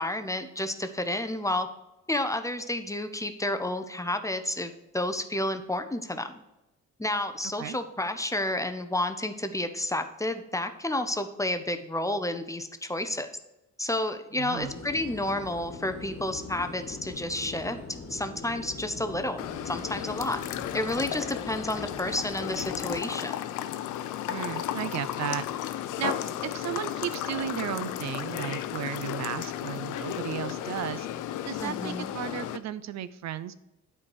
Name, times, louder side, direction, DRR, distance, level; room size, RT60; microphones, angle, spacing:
voice 1, 0.0-1.7 2.1-6.4 7.0-13.3 13.8-17.8 18.1-19.4 19.6-20.4 20.7-23.4 31.6-32.1, left 1 dB, 10° left, 9 dB, 0.6 m, -30 dB
voice 2, 14.4-14.7 24.3-25.5 26.0-26.2 26.4-31.1 31.5-33.5, right 11 dB, 65° right, 14 dB, 0.5 m, -34 dB
sound 1, 14.6-23.0, left 4 dB, 50° left, 1.3 m, -42 dB
sound 2, 19.4-32.6, left 11 dB, 85° left, 0.5 m, -34 dB
8.5 x 4.5 x 4.7 m, 0.95 s
cardioid pair, 90°, 30 cm